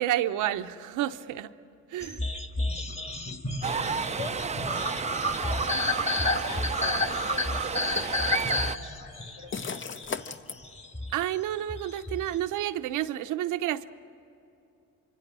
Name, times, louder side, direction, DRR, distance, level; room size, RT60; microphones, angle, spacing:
voice 1, 0.0-1.5 1.9-2.3 11.1-13.9, right 12 dB, 85° right, 10 dB, 0.8 m, -30 dB
sound 1, 2.0-12.4, left 2 dB, 20° left, 1.6 m, -31 dB
voice 2, 3.6-10.4, left 2 dB, 85° left, 1 dB, 4.8 m, -43 dB
sound 2, 3.6-8.8, right 6 dB, 25° right, 0.5 m, -32 dB
sound 3, 6.4-6.6 8.0-8.6 9.5-10.6, left 6 dB, 40° left, 0.8 m, -36 dB
25.5 x 24.0 x 6.2 m, 2.9 s
cardioid pair, 90°, 30 cm